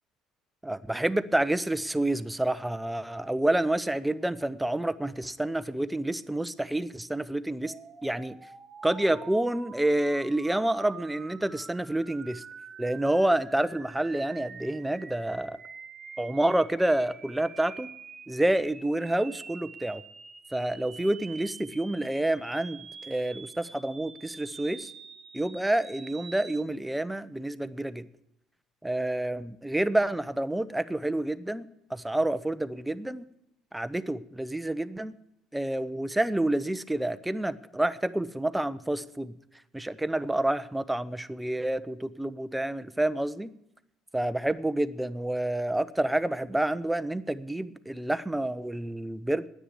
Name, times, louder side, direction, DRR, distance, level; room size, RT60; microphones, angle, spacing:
voice 1, 0.6-7.7 8.0-8.4 8.8-12.4 12.8-15.6 16.2-17.9 18.3-20.0 20.5-24.9 25.3-28.1 28.8-33.3 33.7-35.1 35.5-39.3 39.7-43.5 44.1-49.5, right 1 dB, 10° right, 13 dB, 0.8 m, -28 dB
sound 1, 7.6-26.6, right 5 dB, 35° right, 1.3 m, -47 dB
9.9 x 8.7 x 9.8 m, 0.78 s
hypercardioid pair, 60°, 0 cm